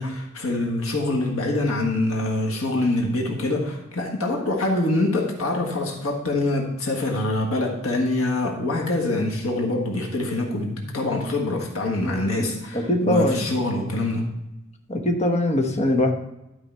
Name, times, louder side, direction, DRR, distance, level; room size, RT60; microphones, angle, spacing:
voice 1, 0.0-14.3, left 2 dB, 85° left, 1 dB, 1.6 m, -25 dB
voice 2, 12.0-13.5 13.8-13.9 14.9-16.1, left 1 dB, 30° left, 3 dB, 1.1 m, -23 dB
12.0 x 4.9 x 4.5 m, 0.92 s
head